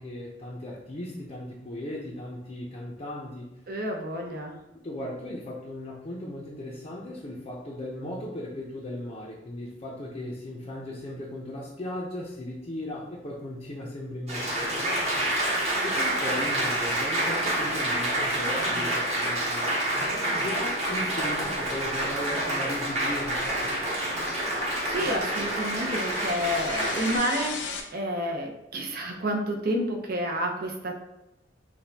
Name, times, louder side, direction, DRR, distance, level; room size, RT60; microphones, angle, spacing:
voice 1, 0.0-3.6 4.7-15.1 15.7-19.7 20.3-23.7, left 1 dB, 35° left, -5 dB, 0.6 m, -37 dB
voice 2, 3.7-4.6 24.8-31.0, equal, 55° right, 2 dB, 0.7 m, -30 dB
Applause, 14.3-27.2, right 1 dB, 35° right, 1.1 m, -28 dB
sound 1, 21.0-27.8, left 4 dB, 85° left, 0.6 m, -40 dB
6.0 x 2.3 x 2.8 m, 0.92 s
head